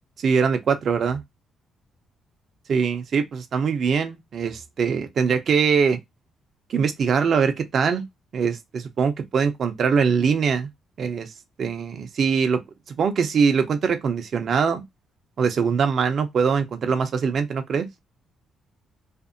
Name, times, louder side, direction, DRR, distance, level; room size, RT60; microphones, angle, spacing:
voice 1, 0.2-1.2 2.7-6.0 6.7-8.0 8.3-10.7 11.0-11.3 11.6-12.6 12.9-14.8 15.4-17.9, right 6 dB, 55° right, 0.6 m, -22 dB
2.6 x 2.5 x 2.5 m
cardioid pair, 90°, 0 cm